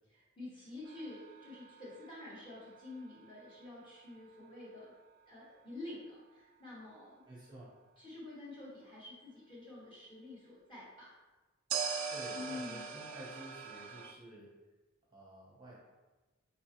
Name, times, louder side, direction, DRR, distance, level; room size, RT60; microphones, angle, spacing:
voice 1, 0.1-4.9 5.3-7.2 8.0-11.2 12.2-13.0, left 2 dB, 20° left, -8 dB, 1.4 m, -48 dB
sound 1, 0.9-3.9 11.7-14.1, right 6 dB, 70° right, 0.4 m, -42 dB
voice 2, 7.2-7.7 12.1-14.5 15.1-15.8, right 1 dB, 20° right, -6 dB, 0.8 m, -51 dB
4.2 x 3.7 x 2.9 m, 1.2 s
head